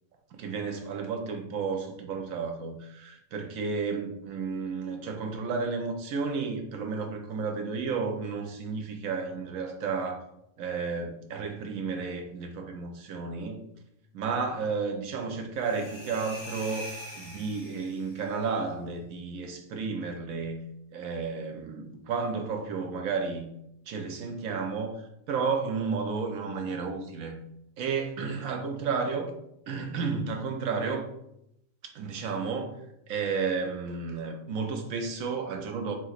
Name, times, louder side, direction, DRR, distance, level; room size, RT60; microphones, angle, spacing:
voice 1, 0.3-10.2 10.6-13.6 14.1-20.6 20.9-23.5 23.9-27.3 27.8-29.3 29.7-31.0 31.9-32.8 33.1-35.9, right 5 dB, 80° right, 4 dB, 1.1 m, -32 dB
sound 1, 15.6-18.3, equal, 85° left, 1.8 m, -43 dB
5.8 x 2.9 x 2.5 m, 0.79 s
omnidirectional pair, 1.4 m